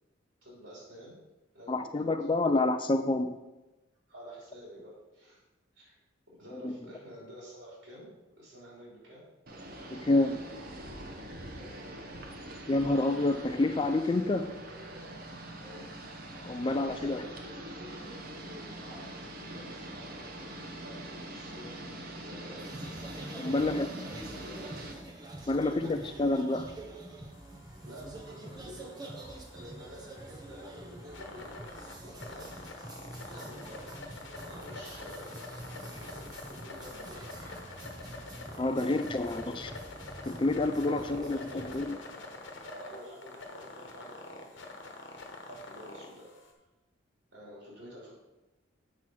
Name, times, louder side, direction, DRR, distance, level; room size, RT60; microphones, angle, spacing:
voice 1, 0.4-1.2 1.5-2.1 4.1-5.4 5.7-6.0 6.3-9.2 11.4-12.1 15.6-15.9 16.6-22.9 23.4-24.7 25.2-26.2 27.8-32.8 33.3-34.2 34.4-37.3 38.7-39.5 40.7-42.0 42.6-44.8 45.5-46.3 47.3-48.1, equal, 70° right, -4 dB, 2.9 m, -49 dB
voice 2, 1.7-3.4 6.6-6.8 9.9-10.4 12.7-14.5 16.4-17.3 23.4-23.9 25.5-26.7 38.6-39.7 40.3-42.0, left 2 dB, 25° left, 9 dB, 0.3 m, -28 dB
sound 1, 9.5-24.9, right 1 dB, 45° right, 0.9 m, -43 dB
sound 2, 22.6-41.8, right 1 dB, 20° right, 0.7 m, -46 dB
sound 3, 27.3-46.5, left 2 dB, 65° left, 1.1 m, -47 dB
7.3 x 5.8 x 4.6 m, 1.0 s
head